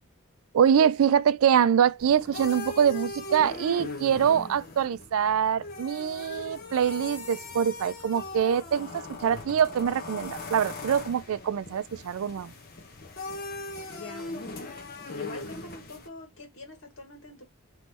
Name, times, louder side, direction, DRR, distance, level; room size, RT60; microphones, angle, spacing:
voice 1, 0.5-12.5, right 8 dB, 75° right, 0.3 m, -24 dB
sound 1, 2.0-16.1, left 2 dB, 40° left, 0.9 m, -39 dB
voice 2, 14.0-17.4, left 3 dB, 65° left, 1.7 m, -44 dB
3.4 x 3.1 x 4.1 m
head